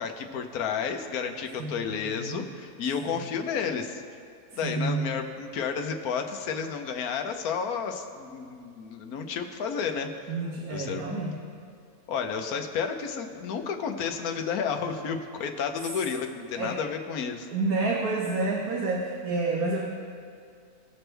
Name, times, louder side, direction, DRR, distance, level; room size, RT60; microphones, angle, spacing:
voice 1, 0.0-4.0 4.5-10.4 10.7-11.3 12.1-17.5, left 6 dB, 85° left, 5 dB, 1.3 m, -31 dB
voice 2, 1.6-2.5 3.0-3.2 4.6-5.0 10.3-11.3 16.6-16.8 17.5-19.8, right 3 dB, 85° right, -2 dB, 1.5 m, -29 dB
18.0 x 6.1 x 3.3 m, 2.4 s
omnidirectional pair, 1.5 m